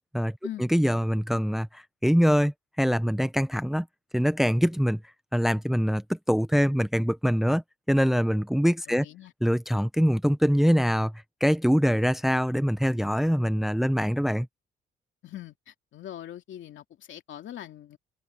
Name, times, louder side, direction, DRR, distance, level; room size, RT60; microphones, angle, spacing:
voice 1, 0.1-3.9 4.1-5.0 5.3-7.6 7.9-9.1 9.4-11.1 11.4-14.5, equal, ahead, 0.7 m, -24 dB
voice 2, 8.9-9.3 15.2-18.0, left 11 dB, 75° left, 2.7 m, -42 dB
open air
cardioid pair, 90°, 20 cm